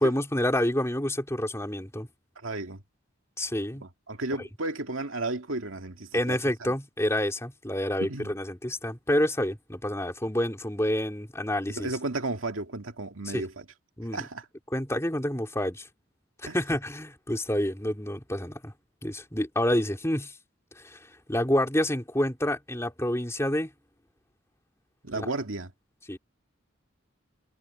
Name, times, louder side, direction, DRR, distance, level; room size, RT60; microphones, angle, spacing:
voice 1, 0.0-2.1 3.4-3.8 6.1-11.9 13.3-13.4 14.0-14.2 14.7-15.9 16.5-18.7 19.0-20.3 20.8-21.0 21.3-23.7 25.1-25.3 26.1-26.2, left 1 dB, 15° left, 3.6 m, -28 dB
voice 2, 2.4-2.8 3.8-6.7 8.0-8.3 11.7-13.7 14.1-14.5 16.5-16.6 25.0-25.7, right 2 dB, 90° right, 2.3 m, -33 dB
head